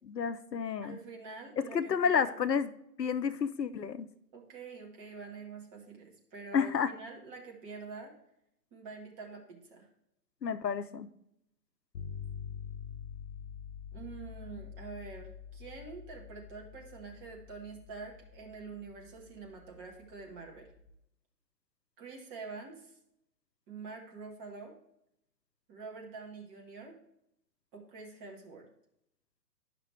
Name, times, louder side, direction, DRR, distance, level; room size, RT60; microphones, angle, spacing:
voice 1, 0.0-1.0 1.6-2.7 3.0-4.1 6.5-6.9 10.4-11.1, left 6 dB, 75° left, 11 dB, 0.7 m, -30 dB
voice 2, 0.8-2.4 4.3-8.1 8.7-9.9 13.9-20.7 22.0-22.9 23.7-24.7 25.7-26.9 27.7-28.7, right 4 dB, 15° right, 0 dB, 1.0 m, -46 dB
sound 1, 11.9-20.9, left 7 dB, 55° left, 1.0 m, -46 dB
10.5 x 6.0 x 3.3 m, 0.78 s
figure-of-eight pair, 125°, 50 cm